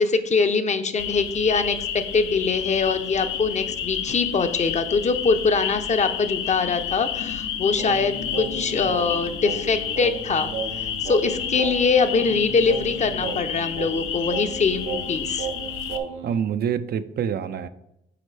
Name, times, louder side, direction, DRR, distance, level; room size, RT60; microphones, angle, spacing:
voice 1, 0.0-10.5 11.0-15.5, left 4 dB, 35° left, 9 dB, 0.6 m, -23 dB
sound 1, 1.0-16.0, left 9 dB, 90° left, 0.6 m, -30 dB
Singing, 7.8-16.4, right 6 dB, 85° right, 0.8 m, -34 dB
voice 2, 16.2-17.7, right 8 dB, 50° right, 12 dB, 0.4 m, -26 dB
8.5 x 4.3 x 3.3 m, 0.84 s
cardioid pair, 90°, 20 cm